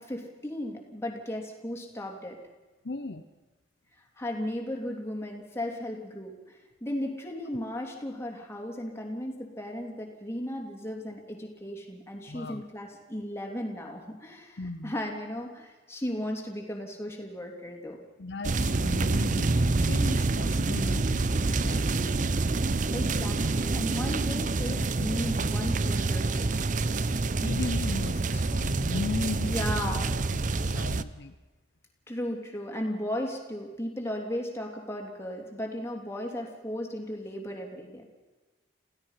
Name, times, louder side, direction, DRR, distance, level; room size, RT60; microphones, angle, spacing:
voice 1, 0.0-2.4 4.2-18.0 22.9-26.8 29.4-30.3 32.1-38.0, left 1 dB, 15° left, 1 dB, 3.1 m, -35 dB
voice 2, 2.8-3.2 12.3-12.6 14.6-14.9 18.2-22.3 27.4-29.8 30.3-31.3, left 3 dB, 60° left, 9 dB, 0.8 m, -37 dB
sound 1, 18.4-31.0, right 3 dB, 45° right, 0.6 m, -27 dB
27.5 x 16.0 x 5.8 m, 1.2 s
head